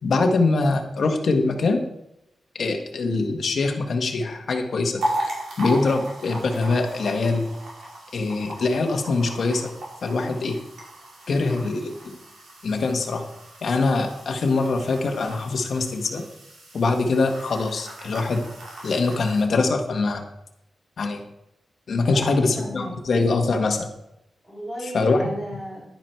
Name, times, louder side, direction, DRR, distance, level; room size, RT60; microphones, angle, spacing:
voice 1, 0.0-1.8 2.5-5.0 5.6-7.5 8.1-9.7 10.0-10.6 11.3-12.2 12.6-13.2 13.6-16.2 16.7-18.4 18.8-20.2 21.0-21.2 21.9-23.9 24.9-25.3, left 3 dB, 50° left, 4 dB, 1.5 m, -23 dB
sound 1, 5.0-19.4, right 1 dB, 75° right, 4.3 m, -36 dB
voice 2, 22.0-22.9 24.4-25.8, equal, 10° right, -10 dB, 5.0 m, -35 dB
10.5 x 10.0 x 4.6 m, 0.84 s
wide cardioid pair, 165°, 0 cm